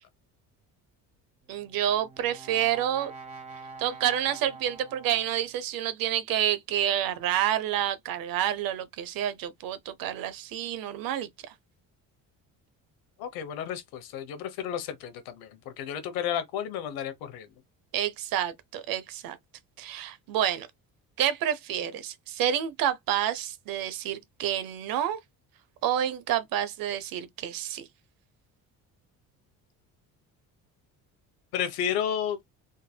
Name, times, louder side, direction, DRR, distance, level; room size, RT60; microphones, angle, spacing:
Brass instrument, 1.4-5.6, right 4 dB, 20° right, 1.2 m, -46 dB
voice 1, 1.5-3.1 3.8-11.5 17.9-19.4 19.8-20.7 21.2-25.2 25.8-27.9, right 11 dB, 70° right, 0.8 m, -29 dB
voice 2, 13.2-17.5 31.5-32.4, left 9 dB, 85° left, 1.0 m, -32 dB
3.8 x 2.7 x 2.2 m
cardioid pair, 90°, 36 cm